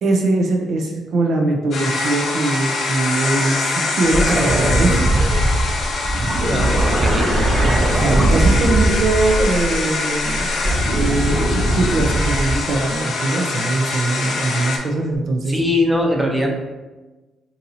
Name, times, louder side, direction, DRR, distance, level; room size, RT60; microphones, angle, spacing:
voice 1, 0.0-5.0 7.9-10.5 10.9-15.6, right 2 dB, 65° right, 1 dB, 0.4 m, -21 dB
sound 1, 1.7-14.8, left 3 dB, 65° left, 0.6 m, -24 dB
sound 2, 4.0-9.8 10.2-12.7 15.1-15.2, right 1 dB, 40° right, 1.3 m, -19 dB
voice 2, 6.5-7.3 15.5-16.5, left 1 dB, 10° right, 1 dB, 0.6 m, -20 dB
2.7 x 2.7 x 3.9 m, 1.2 s
cardioid pair, 90°, 0 cm